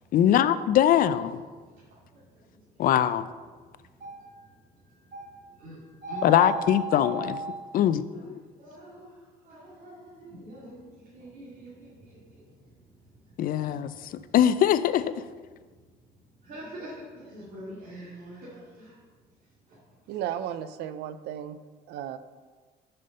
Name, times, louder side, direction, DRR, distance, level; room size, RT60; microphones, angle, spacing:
voice 1, 0.1-1.4 2.8-3.3 6.2-7.4 7.7-8.4 13.4-15.2, left 10 dB, 55° left, 14 dB, 0.4 m, -22 dB
voice 2, 1.5-2.8 3.6-7.6 8.1-14.4 15.7-15.9 16.4-19.0 19.4-20.1, right 2 dB, 55° right, -8 dB, 2.4 m, -42 dB
voice 3, 20.1-21.6 21.9-22.2, right 10 dB, 80° right, 12 dB, 0.5 m, -34 dB
6.6 x 5.7 x 5.3 m, 1.4 s
cardioid pair, 110°, 17 cm